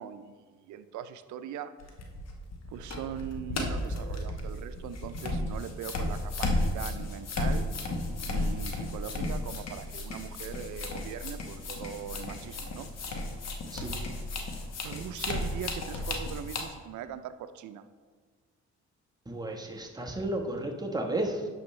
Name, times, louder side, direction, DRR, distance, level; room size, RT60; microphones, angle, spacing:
voice 1, 0.0-1.8 2.7-7.7 8.3-12.9 14.8-17.8, right 9 dB, 75° right, 10 dB, 0.5 m, -41 dB
sound 1, 1.8-16.6, left 2 dB, 60° left, 1.3 m, -34 dB
voice 2, 19.3-21.5, right 1 dB, 15° right, 1 dB, 1.2 m, -33 dB
10.5 x 6.9 x 3.2 m, 1.5 s
cardioid pair, 90°, 30 cm